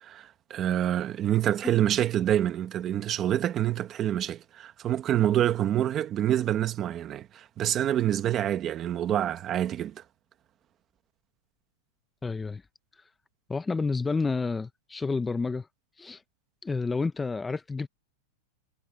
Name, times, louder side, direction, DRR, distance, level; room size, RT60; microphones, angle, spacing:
voice 1, 0.0-10.0, right 11 dB, 20° right, 1.4 m, -27 dB
voice 2, 12.2-12.6 13.5-15.7 16.0-16.2 16.6-17.9, left 4 dB, 10° left, 0.6 m, -29 dB
supercardioid pair, 170°, 0 cm